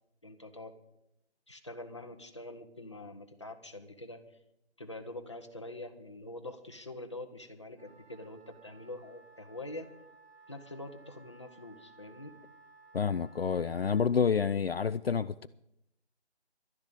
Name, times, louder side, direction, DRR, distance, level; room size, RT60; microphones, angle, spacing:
voice 1, 0.2-0.7 1.5-4.2 4.8-9.9 10.5-12.3, left 1 dB, 25° left, 1.0 m, -45 dB
Wind instrument woodwind instrument, 7.7-14.1, right 4 dB, 55° right, 3.7 m, -58 dB
voice 2, 12.9-15.5, left 6 dB, 60° left, 0.5 m, -29 dB
12.0 x 10.5 x 8.2 m
figure-of-eight pair, 175°, 33 cm